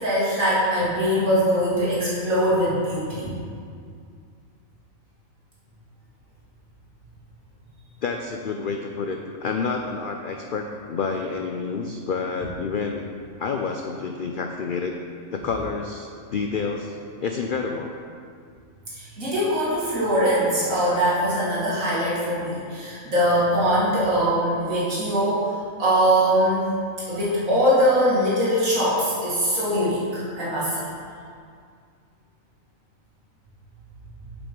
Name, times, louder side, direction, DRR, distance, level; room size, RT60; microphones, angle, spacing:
voice 1, 0.0-3.3 18.9-25.5 25.8-26.7 27.1-30.8, equal, 75° right, -9 dB, 2.4 m, -22 dB
voice 2, 8.0-13.1 13.4-15.0 15.3-17.9, left 5 dB, 70° left, 3 dB, 0.4 m, -29 dB
7.8 x 5.2 x 5.2 m, 2.2 s
omnidirectional pair, 1.4 m